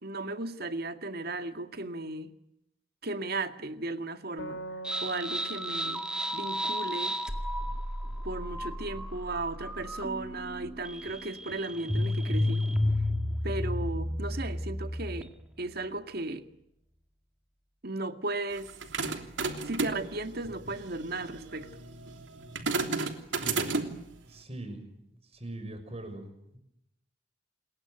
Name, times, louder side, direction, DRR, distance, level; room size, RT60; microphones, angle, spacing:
voice 1, 0.0-2.3 3.0-4.6 5.0-6.0 6.3-7.2 8.2-12.7 13.4-15.3 15.6-16.4 17.8-18.7 19.7-21.7, right 2 dB, 55° right, 2.1 m, -35 dB
sound 1, 4.4-7.9, right 1 dB, 85° left, 3.5 m, -45 dB
sound 2, 4.8-15.4, left 1 dB, 5° right, 2.1 m, -32 dB
sound 3, 18.6-24.1, right 3 dB, 75° right, 3.2 m, -33 dB
voice 2, 24.2-25.1 25.3-26.6, right 1 dB, 35° right, 6.4 m, -41 dB
28.5 x 21.0 x 9.2 m
head